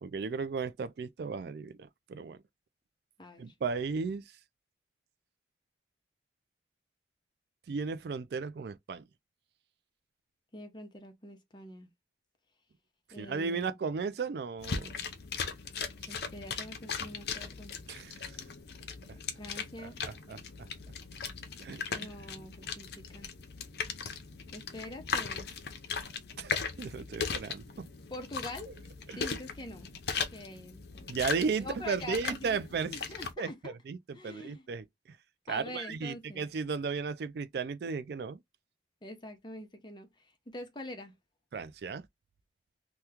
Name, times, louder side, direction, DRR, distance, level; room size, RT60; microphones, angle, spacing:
voice 1, 0.0-2.4 3.4-4.2 7.7-9.0 13.1-15.0 17.9-18.4 19.8-20.4 21.6-22.1 26.4-27.9 28.7-28.8 29.1-29.2 31.1-33.0 33.4-35.2 35.5-38.4 41.5-42.1, right 5 dB, 60° right, 0.3 m, -35 dB
voice 2, 3.2-3.5 10.5-11.9 13.1-13.7 16.1-17.8 19.4-20.0 21.9-23.3 24.5-25.5 28.1-28.8 29.2-31.0 31.6-32.6 32.9-33.7 34.1-34.6 35.5-36.4 39.0-40.1 40.5-41.1, left 1 dB, 25° left, 0.7 m, -45 dB
sound 1, 14.6-33.3, left 5 dB, 60° left, 0.6 m, -38 dB
2.9 x 2.2 x 3.5 m
head